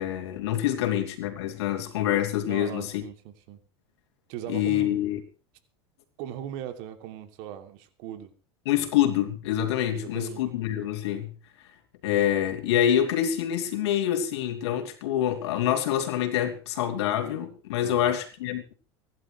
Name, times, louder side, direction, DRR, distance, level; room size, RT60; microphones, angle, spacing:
voice 1, 0.0-3.0 4.5-5.2 8.6-11.3 12.0-18.6, left 11 dB, 80° left, 3.0 m, -26 dB
voice 2, 2.4-3.6 4.3-4.9 6.2-8.3 9.9-10.4 17.8-18.2, right 11 dB, 65° right, 3.1 m, -39 dB
25.0 x 11.5 x 3.4 m
hypercardioid pair, 100°, 14 cm